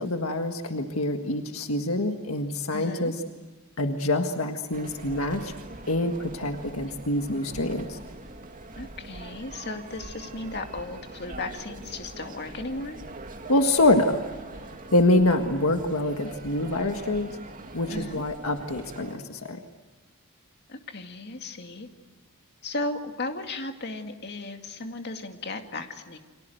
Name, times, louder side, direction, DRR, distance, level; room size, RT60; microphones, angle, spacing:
voice 1, 0.0-3.2 3.8-5.5 5.9-8.0 13.5-14.2 14.9-17.3 17.7-19.6, left 2 dB, 80° left, 5 dB, 1.7 m, -25 dB
voice 2, 2.7-3.1 8.7-13.0 17.9-18.2 20.7-21.9 22.6-26.2, left 2 dB, 50° left, 5 dB, 2.3 m, -35 dB
sound 1, 4.7-19.2, right 2 dB, 40° right, 2.5 m, -43 dB
30.0 x 25.0 x 7.9 m, 1.2 s
head